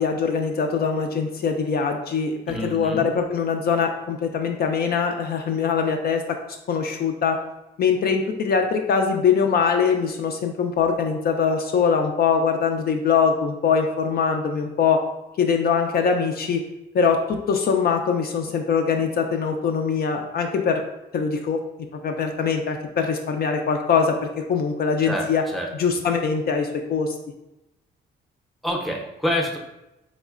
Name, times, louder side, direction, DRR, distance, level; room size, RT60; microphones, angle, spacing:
voice 1, 0.0-6.4 6.7-7.4 7.8-15.0 15.4-16.6 16.9-20.8 21.1-21.6 22.0-25.4 25.7-27.2, left 6 dB, 50° left, 3 dB, 0.4 m, -22 dB
voice 2, 2.5-3.0 25.1-25.3 25.5-25.7 28.6-29.6, equal, ahead, 0 dB, 0.6 m, -26 dB
3.6 x 3.1 x 2.4 m, 0.94 s
cardioid pair, 90°, 20 cm